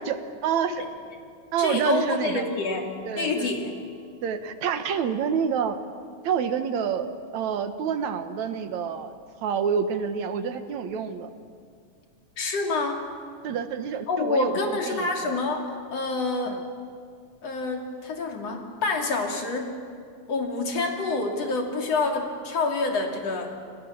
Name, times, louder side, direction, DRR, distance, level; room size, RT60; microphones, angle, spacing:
voice 1, 0.1-0.8 1.5-2.5 3.1-3.5 4.2-5.8 6.2-9.1 9.4-11.3 13.4-15.4 16.5-16.6, right 7 dB, 75° right, 9 dB, 2.6 m, -28 dB
voice 2, 1.6-2.9 3.2-3.8 12.4-13.1 14.1-16.6 17.4-19.7 20.3-23.5, left 3 dB, 60° left, 3 dB, 3.9 m, -27 dB
Chink clink, 2.5-6.7, left 3 dB, 30° right, 8.4 m, -51 dB
30.0 x 26.0 x 7.2 m, 2.1 s
omnidirectional pair, 3.3 m